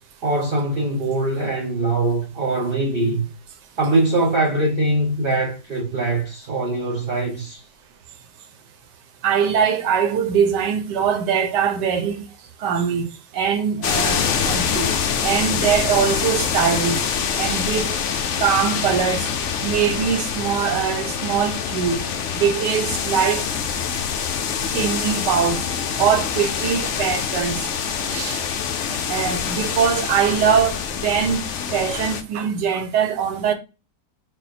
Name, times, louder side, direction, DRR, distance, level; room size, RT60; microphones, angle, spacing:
voice 1, 0.2-3.3 3.8-7.6, right 2 dB, 45° right, 0.8 m, -22 dB
voice 2, 9.2-12.2 12.6-13.1 13.3-14.9 15.2-17.0 17.4-18.0 18.4-19.3 19.6-22.0 22.3-23.5 23.9-24.0 24.7-25.6 26.0-27.6 28.1-28.4 29.1-31.5 31.7-33.5, right 7 dB, 85° right, 1.3 m, -22 dB
sound 1, 13.8-32.2, left 7 dB, 75° left, 0.7 m, -25 dB
4.2 x 2.0 x 4.1 m
omnidirectional pair, 1.8 m